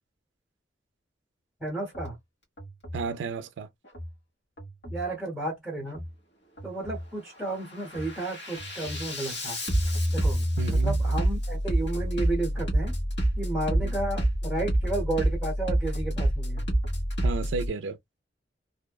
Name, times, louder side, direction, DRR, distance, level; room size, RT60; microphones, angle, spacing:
voice 1, 1.6-2.2 4.8-6.0 6.6-9.6 10.1-13.0 13.4-16.7, right 2 dB, ahead, 0.8 m, -32 dB
Bass drum, 1.9-2.1 2.6-3.0 3.8-4.1 4.6-5.1 5.8-6.1 6.6-7.1 7.5-17.7, right 1 dB, 65° left, 1.3 m, -28 dB
voice 2, 2.9-3.7 10.6-11.0 13.8-13.9 17.2-18.0, right 5 dB, 75° right, 0.4 m, -32 dB
2.6 x 2.0 x 2.3 m
head